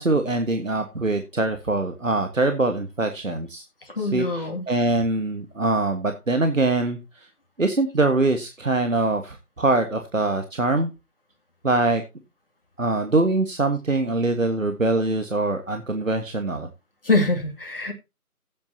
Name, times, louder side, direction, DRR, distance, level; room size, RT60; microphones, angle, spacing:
voice 1, 0.0-3.6 4.0-7.3 7.6-10.9 11.6-12.0 12.8-16.7, right 2 dB, 55° right, 1.6 m, -23 dB
voice 2, 4.0-4.6 17.0-17.9, left 2 dB, 40° left, 2.4 m, -23 dB
16.0 x 8.7 x 2.8 m
figure-of-eight pair, 165°, 45 cm